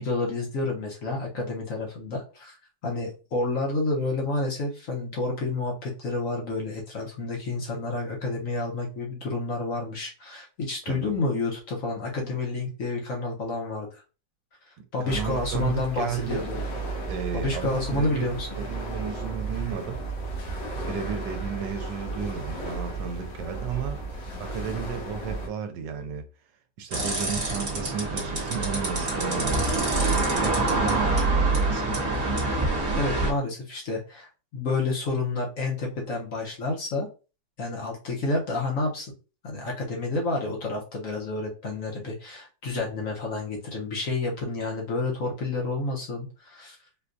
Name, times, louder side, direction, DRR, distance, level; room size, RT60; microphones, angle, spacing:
voice 1, 0.0-2.5 2.8-14.0 14.9-16.6 17.3-18.5 33.0-37.1 37.6-39.1 39.4-46.8, left 3 dB, 55° left, 1.1 m, -29 dB
voice 2, 15.0-16.5 17.1-20.0 20.9-26.3 26.8-29.8 30.3-32.0, right 7 dB, 80° right, 1.2 m, -34 dB
sound 1, 15.1-25.5, right 3 dB, 80° left, 1.6 m, -34 dB
sound 2, 26.9-33.3, right 2 dB, 35° right, 1.2 m, -25 dB
4.4 x 2.2 x 2.5 m
omnidirectional pair, 2.0 m